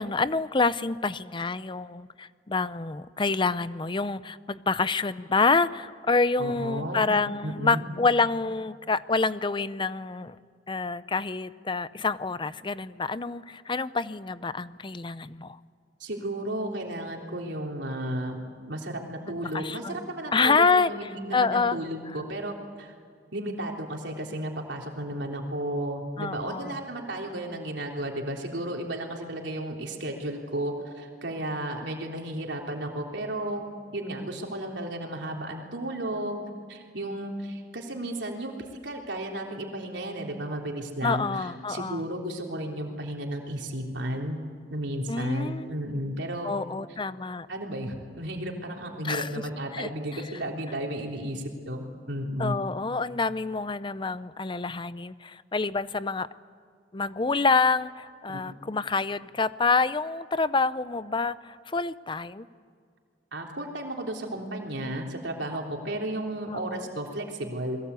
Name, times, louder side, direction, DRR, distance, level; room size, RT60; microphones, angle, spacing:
voice 1, 0.0-10.4 10.7-15.6 19.4-20.0 20.3-20.9 21.3-21.8 26.2-26.8 41.0-42.0 45.1-45.8 46.4-47.5 49.0-49.3 49.7-50.2 52.4-56.3 56.9-62.5 66.5-66.8, left 4 dB, 25° left, 15 dB, 0.6 m, -27 dB
voice 2, 6.4-7.1 7.4-7.9 16.0-18.4 18.7-22.9 23.3-33.6 33.9-36.4 36.7-38.5 38.8-44.4 44.7-46.6 47.5-52.6 58.3-58.4 63.3-67.8, right 1 dB, 80° right, 1 dB, 3.5 m, -33 dB
29.0 x 21.5 x 8.3 m, 2.1 s
head